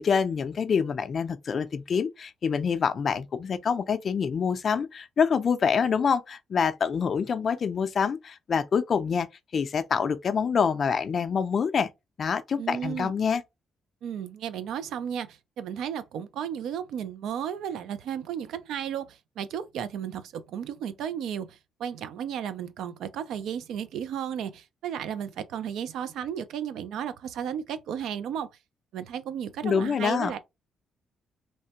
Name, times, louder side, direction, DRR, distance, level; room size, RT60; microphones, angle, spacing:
voice 1, 0.0-9.3 9.5-11.9 12.2-13.4 29.6-30.3, left 6 dB, 50° left, 0.3 m, -26 dB
voice 2, 12.6-13.1 14.0-28.5 28.9-30.4, right 8 dB, 80° right, 0.4 m, -34 dB
3.2 x 2.1 x 2.8 m
cardioid pair, 90°, 0 cm